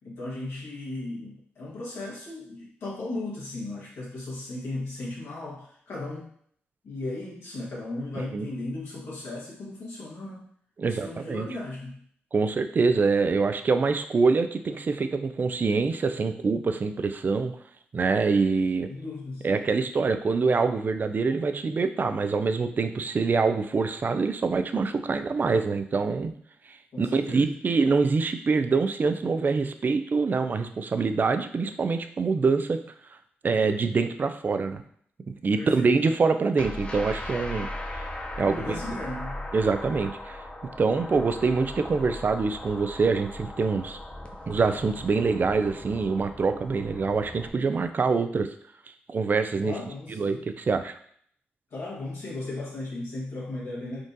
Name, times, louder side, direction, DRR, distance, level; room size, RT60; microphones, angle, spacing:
voice 1, 0.0-6.3 6.8-10.5 10.8-12.0 18.9-19.5 26.9-27.6 35.6-36.2 38.4-39.5 49.6-50.4 51.7-54.0, left 2 dB, 75° left, -5 dB, 1.3 m, -36 dB
voice 2, 8.2-8.5 10.8-11.5 12.3-17.5 17.9-18.9 19.4-26.3 27.0-32.8 33.4-34.8 35.4-37.7 38.4-38.8 39.5-40.4 40.8-44.0 44.5-48.5 49.1-49.7 50.1-50.9, right 4 dB, 45° right, 9 dB, 0.3 m, -25 dB
sound 1, 36.6-47.5, left 1 dB, 25° left, 0.5 m, -38 dB
3.6 x 2.4 x 2.6 m, 0.63 s
cardioid pair, 60°, 4 cm